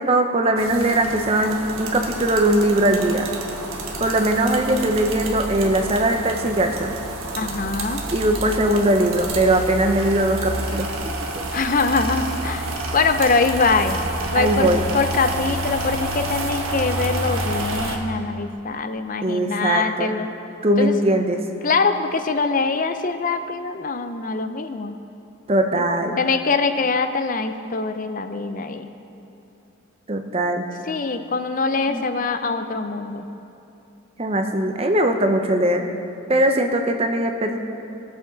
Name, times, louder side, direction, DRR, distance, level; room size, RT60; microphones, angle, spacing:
voice 1, 0.0-3.3 4.0-6.9 8.1-10.9 14.3-14.8 19.2-20.1 20.6-21.4 25.5-26.2 30.1-30.7 31.9-32.1 34.2-35.9 36.3-37.6, right 1 dB, 30° right, 5 dB, 0.8 m, -20 dB
sound 1, 0.6-18.0, right 2 dB, 80° right, 1.4 m, -29 dB
voice 2, 7.4-8.1 11.5-14.0 14.3-20.3 20.8-20.9 21.6-25.0 25.8-25.9 26.2-28.9 30.9-33.2, left 4 dB, 40° left, 8 dB, 0.6 m, -23 dB
21.5 x 7.9 x 4.0 m, 2.8 s
head